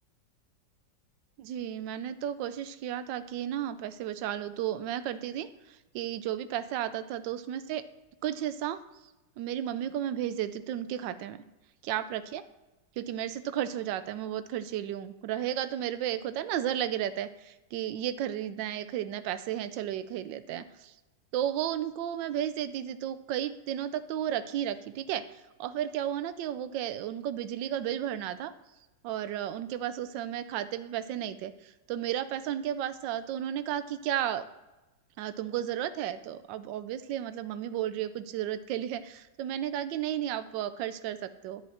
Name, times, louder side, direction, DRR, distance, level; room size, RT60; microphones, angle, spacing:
voice 1, 1.4-7.8 8.2-8.8 9.4-11.4 11.8-12.4 13.0-20.9 21.3-28.5 29.0-34.5 35.2-41.6, right 11 dB, 85° right, 12 dB, 1.3 m, -33 dB
10.5 x 8.8 x 4.2 m, 1.0 s
omnidirectional pair, 1.9 m